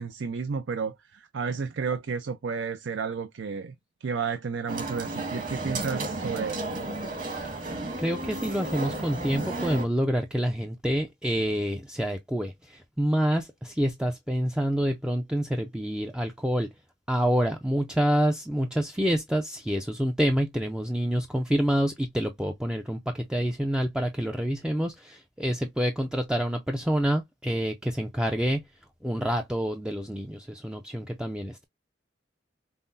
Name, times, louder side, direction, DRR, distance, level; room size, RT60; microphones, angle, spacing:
voice 1, 0.0-3.7 4.0-6.9, right 5 dB, 80° right, 0.5 m, -32 dB
sound 1, 4.7-9.9, right 2 dB, 45° right, 1.6 m, -33 dB
voice 2, 8.0-16.7 17.1-28.6 29.0-31.6, equal, 5° right, 0.4 m, -27 dB
5.6 x 2.0 x 2.5 m
head